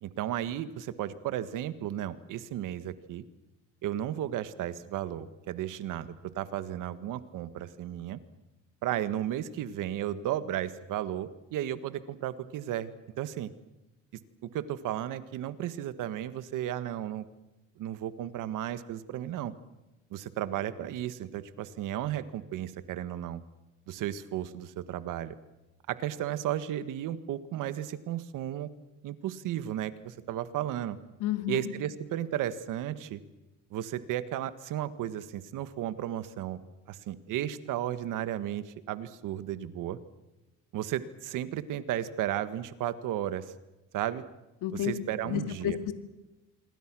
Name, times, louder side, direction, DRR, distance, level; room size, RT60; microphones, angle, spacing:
voice 1, 0.0-3.2 3.8-8.2 8.8-13.5 14.5-17.3 17.8-19.5 20.1-23.4 23.9-25.4 25.9-28.7 29.0-31.0 31.5-33.2 33.7-36.6 36.9-40.0 40.7-43.5 43.9-44.2 44.7-45.8, right 12 dB, 70° right, 13 dB, 1.7 m, -34 dB
voice 2, 31.2-31.7 44.6-44.9 45.2-45.9, left 11 dB, 75° left, 9 dB, 2.4 m, -31 dB
27.0 x 23.5 x 6.2 m, 1.0 s
cardioid pair, 125°, 32 cm